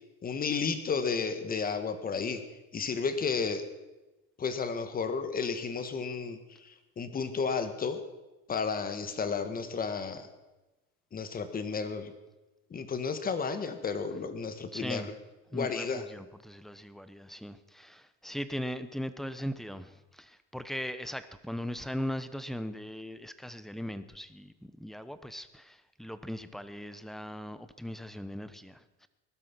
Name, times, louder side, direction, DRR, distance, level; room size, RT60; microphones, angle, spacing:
voice 1, 0.2-2.4 2.7-3.7 4.4-8.0 8.5-10.3 11.1-12.1 12.7-15.1 15.5-16.0, left 5 dB, 25° left, 10 dB, 1.6 m, -32 dB
voice 2, 14.7-15.1 15.5-29.1, equal, ahead, 13 dB, 0.8 m, -39 dB
19.0 x 12.0 x 6.1 m, 1.1 s
cardioid pair, 140°, 35 cm